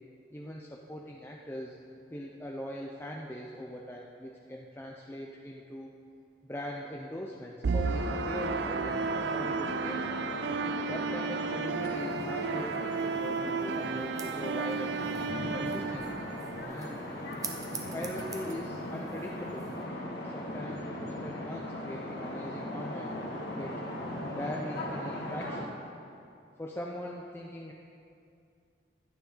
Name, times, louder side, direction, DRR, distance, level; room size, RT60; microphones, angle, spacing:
voice 1, 0.3-1.8 2.1-5.9 6.4-10.2 10.9-15.0 15.5-16.3 16.7-17.1 17.9-19.7 20.3-23.8 24.3-25.8 26.6-27.7, equal, 10° left, -1 dB, 0.6 m, -41 dB
sound 1, 7.6-16.6, right 5 dB, 70° right, 0.4 m, -33 dB
sound 2, 7.8-25.6, left 1 dB, 65° left, 2.0 m, -38 dB
sound 3, 11.6-19.8, right 5 dB, 20° right, 0.9 m, -48 dB
16.5 x 11.5 x 3.9 m, 2.5 s
head